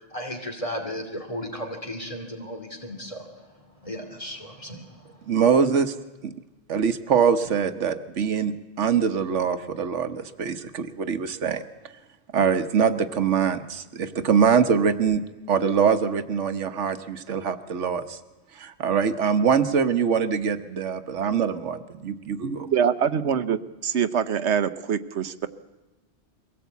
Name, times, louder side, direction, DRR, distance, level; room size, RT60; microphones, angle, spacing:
voice 1, 0.1-3.2 3.8-4.8, equal, 30° left, 3 dB, 2.8 m, -34 dB
voice 2, 5.3-5.9 6.2-6.3 6.7-11.6 12.3-15.2 15.5-18.2 18.6-22.7, right 6 dB, 90° right, 11 dB, 1.4 m, -23 dB
voice 3, 22.4-25.5, right 7 dB, 70° right, 13 dB, 1.2 m, -24 dB
23.0 x 17.5 x 8.3 m, 1.1 s
omnidirectional pair, 1.2 m